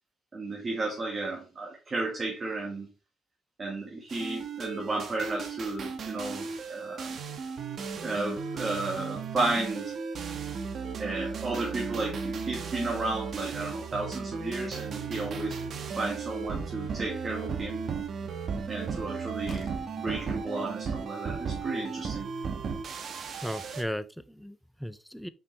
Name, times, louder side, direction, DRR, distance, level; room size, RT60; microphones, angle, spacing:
voice 1, 0.3-2.9 3.6-7.1 8.0-9.9 11.0-15.6 16.0-17.8 18.7-22.3, right 2 dB, 25° right, 1.5 m, -33 dB
sound 1, 4.1-23.8, right 5 dB, 45° right, 1.0 m, -35 dB
Slam, 17.1-17.4 18.9-19.0 19.4-20.0, left 2 dB, 30° left, 1.5 m, -47 dB
voice 2, 23.4-25.3, equal, ahead, 0.4 m, -36 dB
5.8 x 5.1 x 3.2 m
cardioid pair, 145°, 0 cm